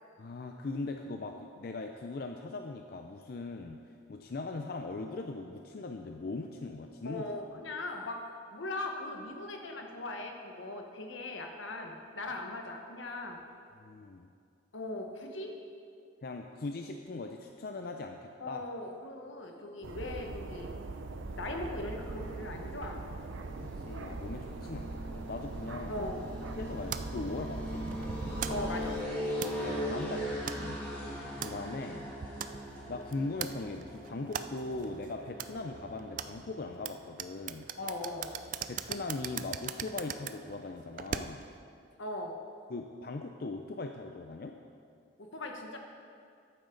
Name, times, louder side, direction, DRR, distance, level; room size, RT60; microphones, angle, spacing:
voice 1, 0.2-3.8 4.1-7.2 13.8-14.3 16.2-18.7 23.4-23.5 23.9-26.1 26.6-27.9 29.6-30.8 31.4-32.1 32.9-37.7 38.7-41.4 42.7-44.5, left 3 dB, 50° left, 4 dB, 0.5 m, -40 dB
voice 2, 7.0-8.2 8.5-13.4 14.7-15.5 18.4-20.8 21.4-23.0 25.9-26.2 28.5-29.0 37.8-38.3 42.0-42.3 45.2-45.8, left 2 dB, 80° left, 3 dB, 1.2 m, -39 dB
sound 1, 19.8-29.0, right 3 dB, 85° right, 0.6 m, -41 dB
sound 2, 21.2-36.8, equal, 10° left, 2.4 m, -41 dB
sound 3, 26.9-41.6, right 8 dB, 45° right, 0.3 m, -42 dB
13.0 x 8.9 x 3.9 m, 2.3 s
head